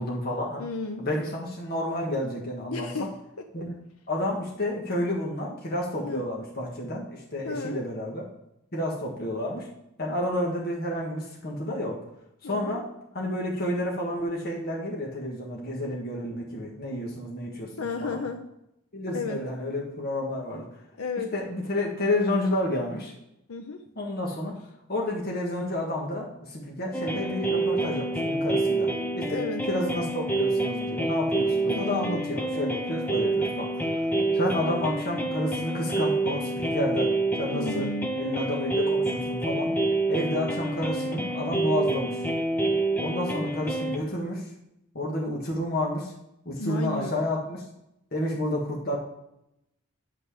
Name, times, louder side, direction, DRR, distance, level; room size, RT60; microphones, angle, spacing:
voice 1, 0.0-0.6 1.0-2.9 3.5-3.7 4.1-8.2 8.7-9.7 10.0-12.0 12.4-12.9 13.1-18.2 18.9-20.7 21.3-23.1 24.0-24.5 24.9-28.9 29.2-29.4 29.7-34.0 34.3-37.1 37.4-37.9 38.2-39.7 40.1-42.2 43.0-44.5 44.9-46.1 46.4-47.6 48.1-49.0, left 1 dB, 45° left, -2 dB, 1.7 m, -30 dB
voice 2, 0.6-1.1 2.7-3.1 3.4-3.7 6.0-6.2 7.4-7.8 12.4-12.8 17.8-18.5 19.1-19.4 21.0-21.3 23.5-23.8 27.5-27.6 29.3-29.7 31.6-32.2 37.5-38.2 46.6-47.1, left 3 dB, 80° left, 5 dB, 0.7 m, -33 dB
sound 1, 26.9-44.0, right 2 dB, 10° left, 0.8 m, -27 dB
9.2 x 5.8 x 4.9 m, 0.82 s
head